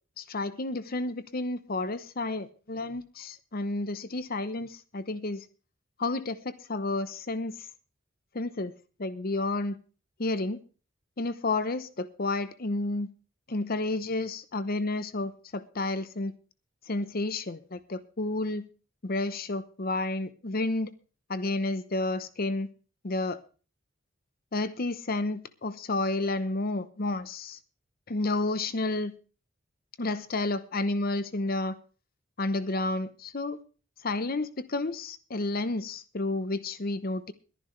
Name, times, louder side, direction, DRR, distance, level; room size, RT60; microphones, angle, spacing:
voice 1, 0.2-5.4 6.0-7.6 8.3-8.7 9.0-9.8 10.2-10.6 11.2-13.1 13.5-16.3 16.9-18.6 19.0-20.9 21.3-22.7 23.0-23.4 24.5-27.6 28.1-29.1 30.0-31.8 32.4-33.6 34.0-37.3, left 2 dB, 50° left, 0.9 m, -31 dB
22.0 x 10.5 x 3.3 m
head